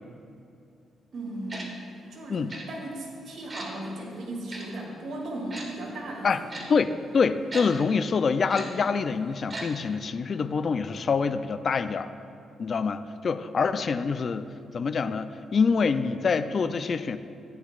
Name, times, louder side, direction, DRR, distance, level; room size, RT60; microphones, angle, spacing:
voice 1, 1.1-1.8 2.1-6.7, right 1 dB, 60° right, -4 dB, 2.4 m, -37 dB
Tick-tock, 1.5-1.7 2.5-2.6 3.5-3.7 4.5-4.6 5.5-5.7 6.5-6.6 7.5-7.6 8.5-8.6 9.5-9.6 9.9-10.0, right 2 dB, 30° right, 1.5 m, -37 dB
voice 2, 7.1-12.1 12.6-14.5 14.7-17.2, left 5 dB, 45° left, 11 dB, 0.4 m, -25 dB
15.0 x 9.4 x 2.5 m, 2.5 s
cardioid pair, 125°, 0 cm